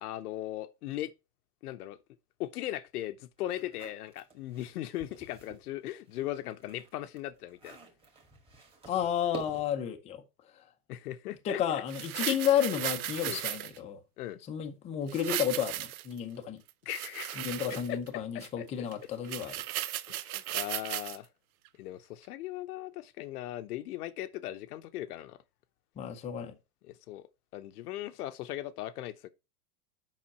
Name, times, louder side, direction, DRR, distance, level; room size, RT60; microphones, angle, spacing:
voice 1, 0.0-1.1 1.6-2.0 2.4-7.8 10.9-11.8 13.2-13.4 14.2-14.4 16.8-19.1 20.1-21.3 21.8-25.4 26.8-27.3 27.5-29.3, left 14 dB, 75° left, 0.9 m, -39 dB
sound 1, 3.4-5.7 6.1-9.9, right 3 dB, 10° right, 1.8 m, -49 dB
voice 2, 8.9-10.2 11.4-14.0 14.5-16.6 17.4-19.5 26.0-26.5, left 9 dB, 15° left, 0.6 m, -31 dB
sound 2, 11.9-13.8 15.1-16.2 16.7-18.1 18.4-18.5 18.9-19.0 19.2-21.2 21.7-21.8, right 14 dB, 70° right, 0.7 m, -36 dB
7.5 x 5.7 x 4.1 m
supercardioid pair, 155°, 46 cm